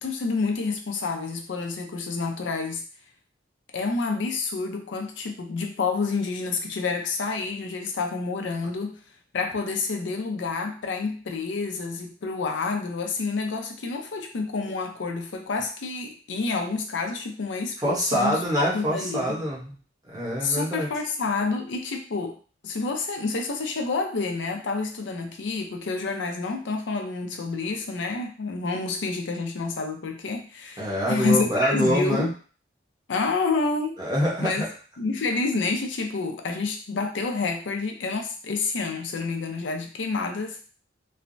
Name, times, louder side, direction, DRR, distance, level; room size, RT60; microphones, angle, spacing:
voice 1, 0.0-2.8 3.7-9.0 9.3-19.4 20.4-22.4 22.6-32.3 33.1-33.9 34.4-34.7 35.0-40.6, left 4 dB, 70° left, 4 dB, 0.5 m, -28 dB
voice 2, 17.8-19.8 20.0-20.9 30.8-32.3 34.0-34.7, equal, 20° right, -5 dB, 0.9 m, -25 dB
3.2 x 2.0 x 2.5 m, 0.39 s
head